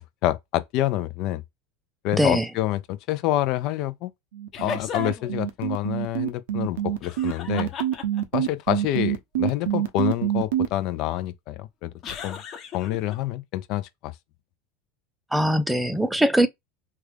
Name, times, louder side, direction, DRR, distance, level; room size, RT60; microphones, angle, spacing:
voice 1, 0.0-1.4 2.0-4.1 4.6-7.7 8.3-11.9 12.2-12.4 12.7-14.1, left 14 dB, 60° left, 0.5 m, -27 dB
sound 1, 4.3-10.7, right 11 dB, 80° right, 0.7 m, -25 dB
sound 2, 4.5-5.4 7.0-8.4 12.0-13.1, left 7 dB, 45° left, 1.0 m, -34 dB
voice 2, 15.3-16.5, equal, 5° right, 0.5 m, -21 dB
3.3 x 2.4 x 3.3 m
hypercardioid pair, 100°, 0 cm